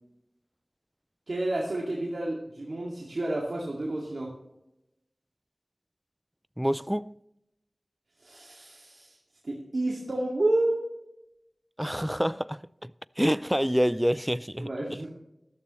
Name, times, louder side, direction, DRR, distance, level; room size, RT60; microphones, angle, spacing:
voice 1, 1.3-4.3 8.2-9.2 9.4-10.9 14.6-15.1, right 1 dB, 75° right, 2.1 m, -30 dB
voice 2, 6.6-7.1 11.8-12.9 13.2-14.7, equal, 5° right, 0.4 m, -27 dB
14.0 x 13.0 x 3.1 m
wide cardioid pair, 45°, 0 cm